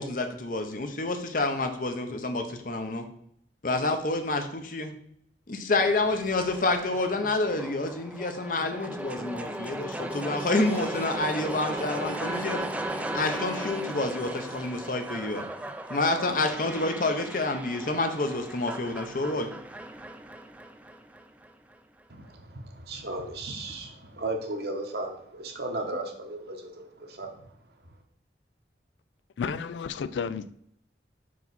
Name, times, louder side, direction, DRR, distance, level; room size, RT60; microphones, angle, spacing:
voice 1, 0.0-3.1 3.6-4.9 5.5-12.6 13.1-15.5 15.9-19.4, left 2 dB, 50° left, 6 dB, 0.8 m, -28 dB
sound 1, 5.7-21.8, right 1 dB, 10° right, 0.4 m, -37 dB
sound 2, 10.2-14.8, left 1 dB, 20° left, 0.9 m, -42 dB
voice 2, 22.1-27.4, right 2 dB, 60° right, 3 dB, 1.1 m, -35 dB
voice 3, 29.4-30.5, left 6 dB, 85° left, 14 dB, 0.4 m, -32 dB
5.7 x 4.8 x 4.1 m, 0.68 s
head